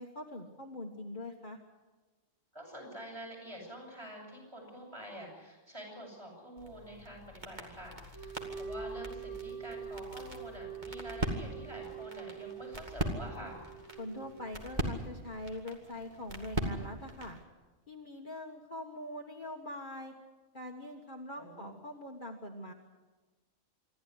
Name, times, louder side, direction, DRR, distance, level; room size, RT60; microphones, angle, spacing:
voice 1, 0.0-1.6 14.0-17.4 17.9-20.1 20.5-22.7, left 1 dB, 40° left, 1 dB, 1.7 m, -43 dB
voice 2, 2.5-13.6 21.3-21.7, equal, 20° right, 0 dB, 7.8 m, -47 dB
sound 1, 6.6-17.4, right 1 dB, 35° right, 2.5 m, -41 dB
sound 2, 8.1-14.9, right 6 dB, 80° right, 7.5 m, -44 dB
27.0 x 12.0 x 9.6 m, 1.3 s
omnidirectional pair, 1.3 m